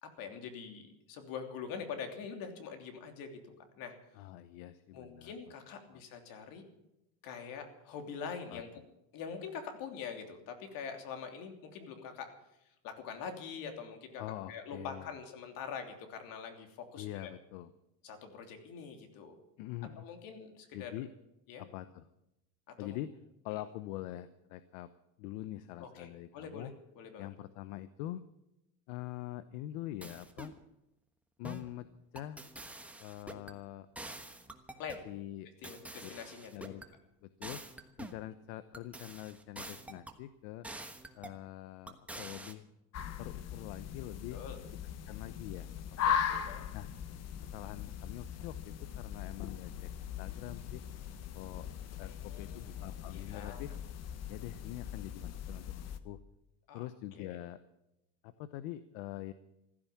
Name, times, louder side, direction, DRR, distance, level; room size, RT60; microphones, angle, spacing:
voice 1, 0.0-3.4 3.7-3.9 4.9-6.6 7.2-8.7 9.1-12.3 12.8-14.2 14.5-17.3 18.0-19.4 20.0-20.9 21.5-21.6 22.8-23.0 23.5-23.6 25.8-26.7 26.9-27.3 34.8-35.1 35.6-36.7 44.3-44.6 46.3-46.6 52.0-53.6 56.7-56.9 57.1-57.4, left 6 dB, 60° left, 5 dB, 3.2 m, -44 dB
voice 2, 4.2-5.3 5.9-6.0 8.5-8.6 14.2-15.1 17.0-17.7 19.6-20.0 20.7-21.1 21.6-22.0 22.8-23.1 23.4-24.9 25.2-26.7 27.2-28.2 28.9-30.5 31.4-32.4 33.0-33.9 35.0-35.5 36.0-36.1 36.5-36.8 37.2-37.6 38.0-40.7 41.1-42.7 43.2-44.4 45.1-45.7 46.0-46.4 46.7-46.9 47.4-50.8 51.3-51.7 52.0-53.7 54.3-56.2 56.7-57.6 58.2-59.3, left 14 dB, 80° left, 13 dB, 1.0 m, -44 dB
sound 1, 30.0-30.6 31.4-31.7 32.2-33.6 34.0-35.1 35.6-36.9 37.4-38.2 38.7-40.2 40.6-41.4 41.9-42.5, right 2 dB, 5° right, 1.3 m, -47 dB
sound 2, 42.9-56.0, left 8 dB, 40° left, 1.2 m, -39 dB
15.5 x 12.5 x 7.3 m, 0.87 s
cardioid pair, 140°, 38 cm